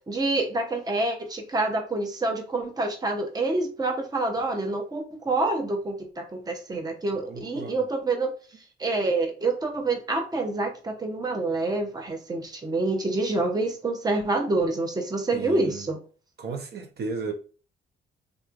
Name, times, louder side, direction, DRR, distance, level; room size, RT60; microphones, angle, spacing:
voice 1, 0.1-8.3 8.8-16.0, right 2 dB, 20° right, 0.8 m, -27 dB
voice 2, 7.1-7.9 15.3-15.9 16.4-17.3, right 4 dB, 55° right, 0.8 m, -35 dB
3.8 x 3.1 x 2.5 m
cardioid pair, 90°, 20 cm